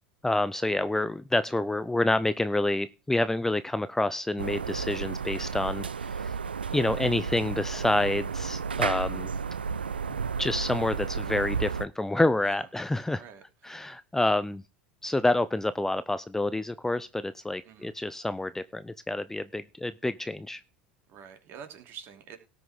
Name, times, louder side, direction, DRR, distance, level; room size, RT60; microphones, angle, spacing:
voice 1, 0.2-6.4 6.7-9.3 10.4-13.2 13.6-14.6 15.0-20.6, left 2 dB, 10° left, 0.6 m, -28 dB
sound 1, 4.4-11.9, right 5 dB, 90° right, 0.4 m, -32 dB
voice 2, 13.2-13.8 17.6-18.0 21.1-22.4, right 7 dB, 45° right, 3.1 m, -47 dB
18.5 x 6.1 x 3.7 m
hypercardioid pair, 80°, 5 cm